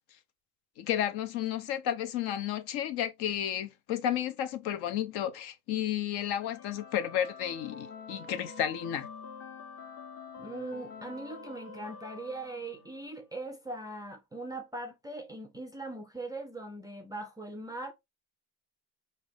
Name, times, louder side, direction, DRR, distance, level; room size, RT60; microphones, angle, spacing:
voice 1, 0.8-9.1, left 10 dB, 70° left, 0.9 m, -32 dB
sound 1, 6.2-13.2, left 5 dB, 30° left, 0.8 m, -47 dB
voice 2, 10.4-17.9, right 2 dB, 10° right, 0.3 m, -40 dB
5.1 x 2.7 x 3.4 m
cardioid pair, 170°, 40 cm